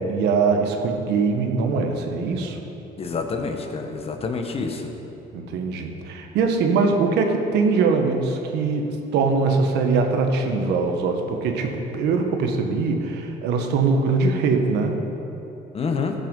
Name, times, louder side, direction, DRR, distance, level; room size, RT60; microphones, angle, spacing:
voice 1, 0.0-2.6 5.3-15.0, right 4 dB, 85° right, 4 dB, 1.3 m, -22 dB
voice 2, 3.0-4.9 15.7-16.1, left 4 dB, 35° left, 5 dB, 1.2 m, -27 dB
14.5 x 6.6 x 5.4 m, 3.0 s
cardioid pair, 110°, 17 cm